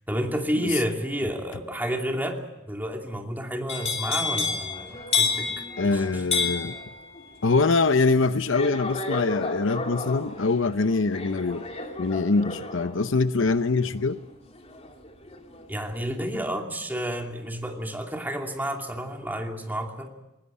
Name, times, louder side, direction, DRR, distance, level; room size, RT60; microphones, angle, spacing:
voice 1, 0.1-2.4 2.7-5.5 5.8-6.2 15.7-20.1, equal, 10° right, 2 dB, 2.7 m, -30 dB
sound 1, 3.7-15.6 16.0-16.4, left 4 dB, 35° left, 2.9 m, -31 dB
voice 2, 5.8-6.8 7.4-11.6 12.0-14.2, left 3 dB, 70° left, 12 dB, 0.8 m, -23 dB
20.5 x 19.5 x 8.5 m, 0.99 s
head